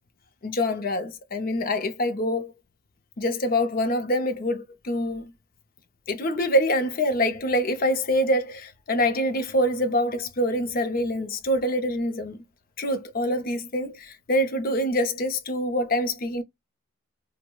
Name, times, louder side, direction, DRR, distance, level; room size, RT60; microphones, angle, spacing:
voice 1, 0.4-2.5 3.2-5.3 6.1-12.4 12.8-16.4, left 1 dB, 45° left, 0.5 m, -25 dB
4.5 x 2.1 x 2.2 m
head